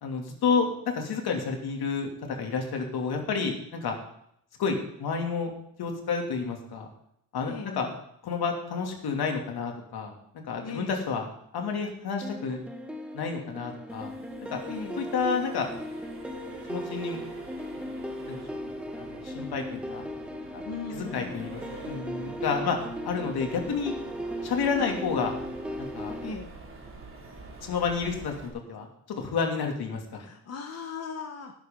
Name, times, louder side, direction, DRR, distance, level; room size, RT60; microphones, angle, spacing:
voice 1, 0.0-4.0 4.6-5.5 5.8-6.9 7.3-7.9 8.2-10.2 10.4-11.3 11.5-12.6 13.1-14.1 14.5-14.6 15.0-15.7 16.7-17.2 18.3-20.0 20.5-23.9 24.4-25.3 25.8-26.2 27.6-30.2, left 5 dB, 75° left, 3 dB, 2.9 m, -30 dB
voice 2, 7.4-8.0 10.6-11.1 14.7-15.1 20.6-21.5 24.8-25.0 26.2-26.6 30.2-31.5, left 5 dB, 40° left, 3 dB, 1.2 m, -38 dB
sound 1, 12.2-26.3, equal, 5° right, 1.1 m, -37 dB
Accelerating revving vroom, 13.9-28.5, right 3 dB, 30° right, 3.0 m, -48 dB
17.5 x 10.5 x 3.9 m, 0.73 s
wide cardioid pair, 175°, 38 cm